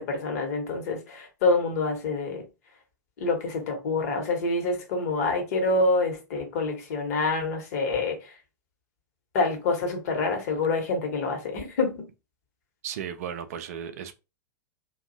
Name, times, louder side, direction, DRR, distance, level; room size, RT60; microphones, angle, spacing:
voice 1, 0.0-2.4 3.2-8.3 9.3-12.1, left 3 dB, 50° left, 1.0 m, -27 dB
voice 2, 12.8-14.2, right 8 dB, 50° right, 0.4 m, -35 dB
2.6 x 2.3 x 2.6 m
figure-of-eight pair, 95°, 10 cm